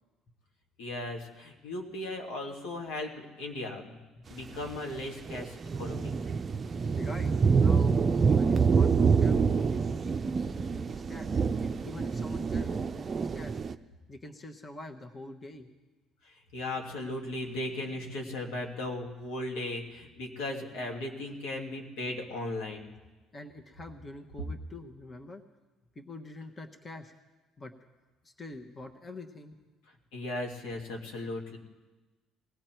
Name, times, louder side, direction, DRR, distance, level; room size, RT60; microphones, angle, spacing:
voice 1, 0.8-4.0 4.3-6.1 16.2-22.9 30.1-31.6, left 1 dB, 85° left, 0 dB, 2.3 m, -37 dB
sound 1, 4.6-5.0 5.3-13.7, right 5 dB, 35° right, 0.5 m, -26 dB
voice 2, 6.6-8.0 8.2-13.6 14.1-15.7 23.3-25.4 25.9-27.1 27.6-27.7 28.2-29.6, left 2 dB, 25° left, 4 dB, 1.2 m, -46 dB
20.0 x 16.0 x 4.6 m, 1.2 s
cardioid pair, 95°, 0 cm